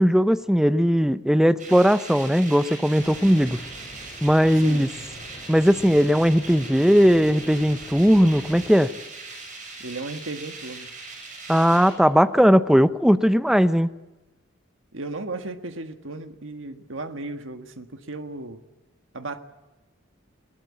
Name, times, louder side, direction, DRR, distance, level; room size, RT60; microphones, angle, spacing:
voice 1, 0.0-3.6 4.2-4.9 5.5-8.9 11.5-13.9, equal, 5° right, 13 dB, 0.7 m, -18 dB
sound 1, 1.6-11.9, right 3 dB, 40° right, 7.2 m, -40 dB
sound 2, 3.0-8.7, equal, 25° left, 5.2 m, -44 dB
voice 2, 9.8-10.9 14.9-18.6 19.1-19.4, right 2 dB, 80° right, 8 dB, 1.5 m, -35 dB
21.0 x 19.0 x 8.4 m, 1.1 s
head